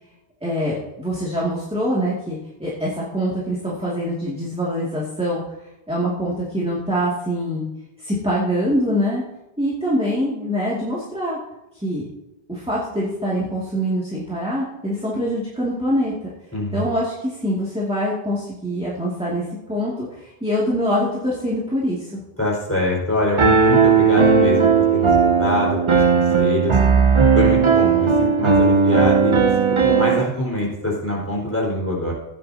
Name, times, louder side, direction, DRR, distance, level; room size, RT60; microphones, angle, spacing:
voice 1, 0.4-5.4 5.9-7.7 8.0-9.2 9.6-11.4 11.7-12.0 12.5-16.3 16.7-22.2, equal, 5° right, -7 dB, 2.4 m, -24 dB
voice 2, 16.5-16.9 22.4-25.1 25.4-26.8 27.3-29.5 29.8-32.1, left 1 dB, 10° left, -5 dB, 5.1 m, -24 dB
Piano, 23.4-30.2, right 5 dB, 30° right, 0.6 m, -16 dB
15.5 x 10.0 x 2.9 m, 0.92 s
omnidirectional pair, 1.1 m